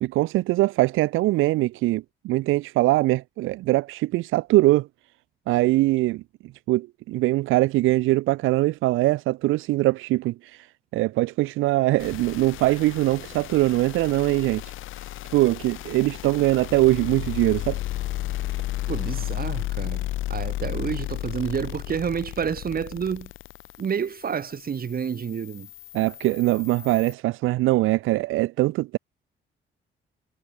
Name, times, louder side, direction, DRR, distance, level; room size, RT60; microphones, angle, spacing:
voice 1, 0.0-4.9 5.5-6.2 6.7-10.7 10.9-14.6 15.3-17.8 25.9-29.0, right 18 dB, 90° right, 0.6 m, -22 dB
sound 1, 12.0-27.1, left 15 dB, 85° left, 1.6 m, -34 dB
voice 2, 18.9-23.3 23.8-25.7, right 7 dB, 50° right, 3.6 m, -29 dB
cardioid pair, 90°, 20 cm